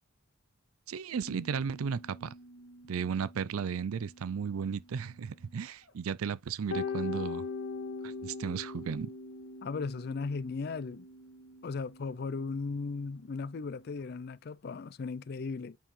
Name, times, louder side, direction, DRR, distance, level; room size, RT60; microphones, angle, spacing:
voice 1, 0.9-2.3 2.9-7.5 8.0-9.1, right 6 dB, 80° right, 0.4 m, -34 dB
sound 1, 1.1-5.5 5.9-6.0 6.7-14.0, left 4 dB, 65° left, 1.7 m, -43 dB
voice 2, 9.6-11.1 11.6-15.8, left 4 dB, 45° left, 0.4 m, -36 dB
9.1 x 4.6 x 3.2 m
head